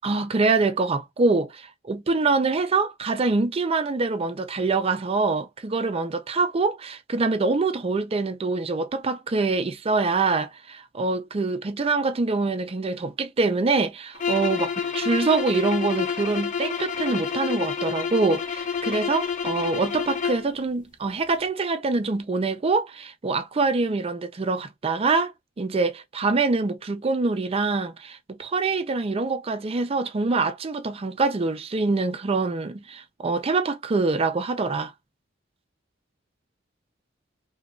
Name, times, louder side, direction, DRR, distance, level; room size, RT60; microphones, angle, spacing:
voice 1, 0.0-34.9, right 3 dB, 30° right, 0.4 m, -25 dB
sound 1, 14.1-20.5, left 6 dB, 40° left, 0.5 m, -28 dB
3.0 x 2.2 x 2.4 m
head